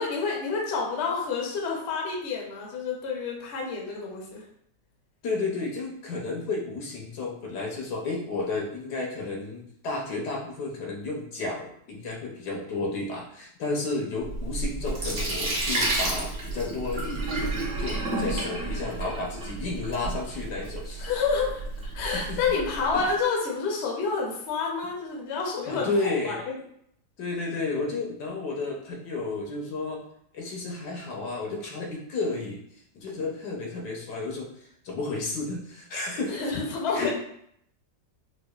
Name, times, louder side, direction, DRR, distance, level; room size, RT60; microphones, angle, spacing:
voice 1, 0.0-4.4 21.0-21.6 21.9-26.6 36.3-37.1, left 4 dB, 55° left, -1 dB, 0.8 m, -29 dB
voice 2, 5.2-17.5 17.8-21.0 22.0-22.4 22.9-23.1 25.7-26.4 27.2-30.0 30.3-32.6 32.9-34.5 34.8-36.5 36.9-37.1, left 3 dB, 75° left, -1 dB, 1.3 m, -32 dB
Sink (filling or washing), 14.2-23.0, right 2 dB, 45° right, 0.9 m, -31 dB
4.6 x 2.3 x 2.3 m, 0.69 s
omnidirectional pair, 1.8 m